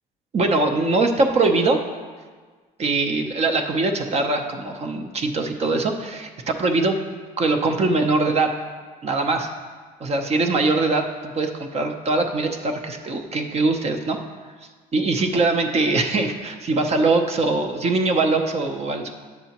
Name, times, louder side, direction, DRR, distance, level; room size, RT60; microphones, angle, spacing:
voice 1, 0.3-1.8 2.8-7.0 7.4-8.5 9.0-9.5 10.0-14.2 14.9-19.1, right 3 dB, 40° right, 5 dB, 0.7 m, -22 dB
9.2 x 6.7 x 2.9 m, 1.5 s
cardioid pair, 110°, 17 cm